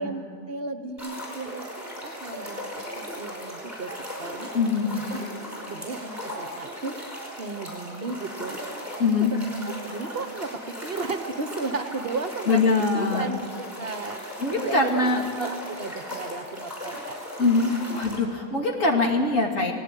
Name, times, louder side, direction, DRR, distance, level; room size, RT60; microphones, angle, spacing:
voice 1, 0.0-1.7 2.0-3.9 4.2-4.5 4.9-5.2 5.7-6.9 7.4-8.6 9.1-9.6 9.8-12.6 12.9-13.5 13.8-17.2, right 3 dB, 50° right, 8 dB, 1.0 m, -34 dB
sound 1, 1.0-18.2, equal, 10° right, 5.2 m, -37 dB
voice 2, 4.5-4.9 9.0-9.3 12.5-13.3 14.4-15.2 17.4-19.7, left 3 dB, 70° left, 1 dB, 2.7 m, -22 dB
18.5 x 16.0 x 8.9 m, 2.2 s
omnidirectional pair, 1.4 m